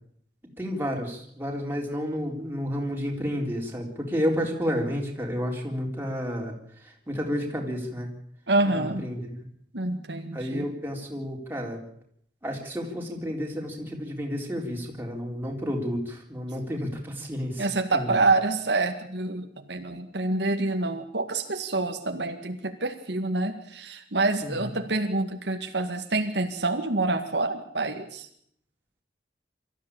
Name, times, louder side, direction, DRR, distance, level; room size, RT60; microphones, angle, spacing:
voice 1, 0.6-6.5 7.1-8.1 8.7-9.2 10.3-11.8 12.4-18.1 24.4-24.7, equal, 10° right, 0 dB, 4.0 m, -31 dB
voice 2, 8.5-9.1 9.7-10.7 17.6-28.3, right 2 dB, 70° right, 5 dB, 2.0 m, -27 dB
24.0 x 14.0 x 8.7 m, 0.68 s
head